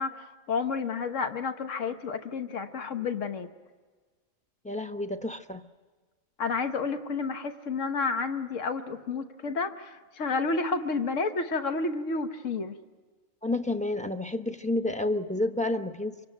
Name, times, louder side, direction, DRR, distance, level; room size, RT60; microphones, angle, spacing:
voice 1, 0.0-3.5 6.4-12.7, left 4 dB, 75° left, 8 dB, 1.5 m, -30 dB
voice 2, 4.6-5.7 13.4-16.2, left 2 dB, 5° left, 7 dB, 0.7 m, -30 dB
25.0 x 25.0 x 9.1 m, 1.4 s
omnidirectional pair, 1.3 m